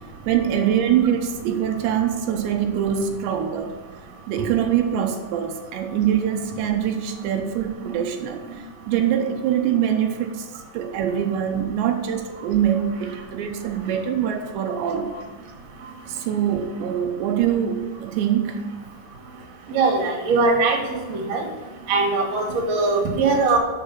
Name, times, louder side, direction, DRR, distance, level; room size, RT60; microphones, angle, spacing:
voice 1, 0.3-3.8 4.3-8.5 8.9-10.5 10.7-15.2 16.1-18.6, right 9 dB, 85° right, 4 dB, 3.2 m, -23 dB
voice 2, 19.7-21.4 21.9-23.6, right 3 dB, 45° right, 0 dB, 2.9 m, -21 dB
12.0 x 6.7 x 6.0 m, 1.2 s
omnidirectional pair, 5.0 m